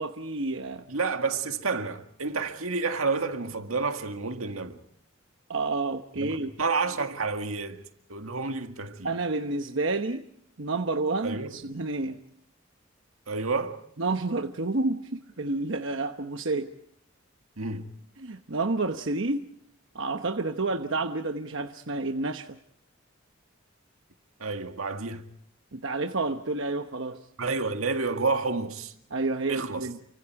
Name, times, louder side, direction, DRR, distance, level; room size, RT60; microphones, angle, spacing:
voice 1, 0.0-0.8 5.5-6.5 9.0-10.3 10.6-12.2 14.0-16.7 18.2-19.5 19.9-22.6 25.7-27.3 29.1-30.0, right 3 dB, 65° right, 1.1 m, -29 dB
voice 2, 0.9-4.8 6.2-7.8 8.1-9.1 11.2-11.6 13.3-13.8 17.6-17.9 24.4-25.2 27.4-28.9 29.5-29.9, right 4 dB, 85° right, 1.9 m, -30 dB
29.5 x 25.0 x 4.7 m
head